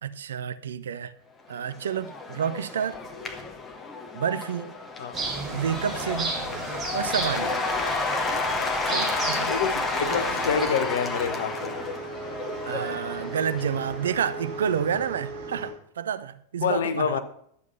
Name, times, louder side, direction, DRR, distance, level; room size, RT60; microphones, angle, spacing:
voice 1, 0.0-1.1 1.5-3.0 4.1-4.7 5.5-6.3 6.9-7.6 8.9-9.5 12.7-17.2, right 8 dB, 65° right, 0.6 m, -29 dB
Cheering / Applause / Crowd, 1.5-15.0, left 3 dB, 20° left, 1.4 m, -31 dB
sound 1, 5.1-10.6, right 3 dB, 15° right, 3.7 m, -33 dB
voice 2, 9.5-11.8 16.6-17.2, left 6 dB, 60° left, 1.1 m, -27 dB
sound 2, 9.9-15.7, right 3 dB, 45° right, 3.4 m, -38 dB
11.5 x 7.3 x 5.5 m
figure-of-eight pair, 90°, 0 cm